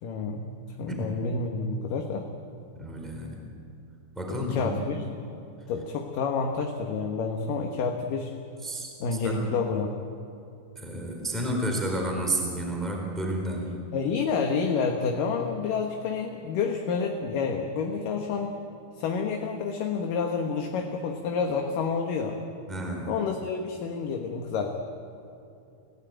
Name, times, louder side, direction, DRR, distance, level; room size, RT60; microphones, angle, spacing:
voice 1, 0.0-2.3 4.3-5.0 5.7-8.3 9.0-9.9 13.9-18.5 19.0-22.4 23.1-24.7, left 5 dB, 65° left, 3 dB, 2.8 m, -29 dB
voice 2, 2.8-3.4 4.1-4.8 8.6-9.5 10.8-13.8 22.7-23.1, right 1 dB, ahead, 1 dB, 3.8 m, -31 dB
29.0 x 17.5 x 8.9 m, 2.7 s
omnidirectional pair, 4.4 m